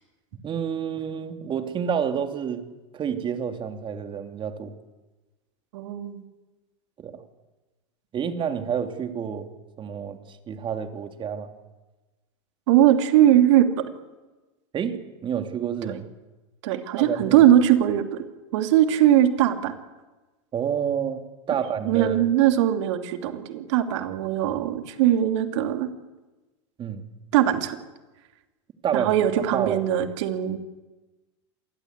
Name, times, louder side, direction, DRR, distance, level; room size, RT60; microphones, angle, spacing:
voice 1, 0.4-2.6 2.9-4.7 7.0-7.2 8.1-9.5 9.8-11.5 14.7-16.1 17.0-17.4 20.5-22.3 26.8-27.0 28.8-29.1 29.5-29.8, right 8 dB, 30° right, 7 dB, 3.0 m, -29 dB
voice 2, 5.7-6.2 12.7-13.9 15.9-16.0 16.6-18.2 18.5-19.7 21.9-25.9 27.3-27.8 28.9-30.7, right 11 dB, 65° right, 7 dB, 2.9 m, -20 dB
27.0 x 20.0 x 8.3 m, 1.1 s
hypercardioid pair, 105°, 16 cm